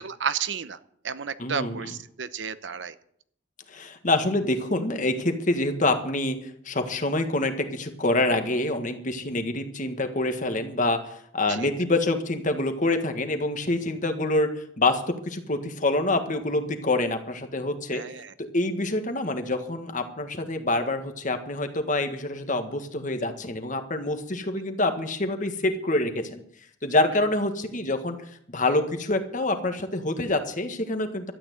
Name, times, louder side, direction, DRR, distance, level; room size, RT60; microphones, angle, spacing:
voice 1, 0.0-0.8 1.0-2.9 11.5-11.7 17.9-18.3, right 7 dB, 70° right, 13 dB, 0.8 m, -32 dB
voice 2, 1.4-2.0 3.7-18.0 18.4-26.4 26.8-31.3, left 2 dB, 45° left, 7 dB, 1.7 m, -26 dB
13.0 x 9.0 x 9.3 m, 0.66 s
head